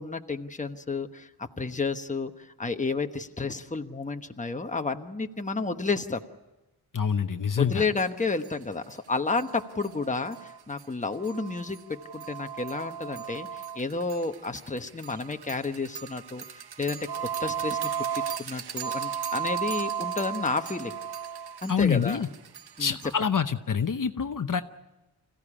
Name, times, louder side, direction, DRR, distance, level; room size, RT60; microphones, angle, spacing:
voice 1, 0.0-6.2 7.6-17.1 17.4-17.8 18.1-20.9 21.6-22.2 22.8-23.0, left 3 dB, 20° left, 6 dB, 1.1 m, -31 dB
voice 2, 6.9-7.8 21.7-22.3 22.8-24.6, left 6 dB, 55° left, 8 dB, 0.9 m, -26 dB
sound 1, 8.0-8.1 8.4-8.5 8.9-9.0 9.3-23.2, right 8 dB, 75° right, 0.8 m, -35 dB
26.0 x 16.0 x 10.0 m, 1.0 s
wide cardioid pair, 115°, 39 cm